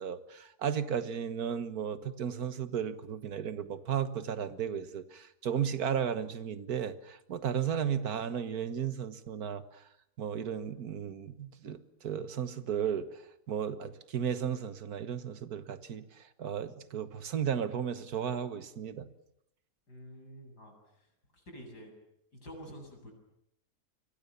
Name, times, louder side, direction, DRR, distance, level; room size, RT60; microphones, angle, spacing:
voice 1, 0.0-9.9 10.2-19.1, right 8 dB, 65° right, 11 dB, 1.9 m, -34 dB
voice 2, 19.9-20.7 21.3-21.9 22.3-23.1, equal, 80° left, 3 dB, 8.3 m, -48 dB
29.5 x 24.5 x 7.0 m, 0.77 s
omnidirectional pair, 1.7 m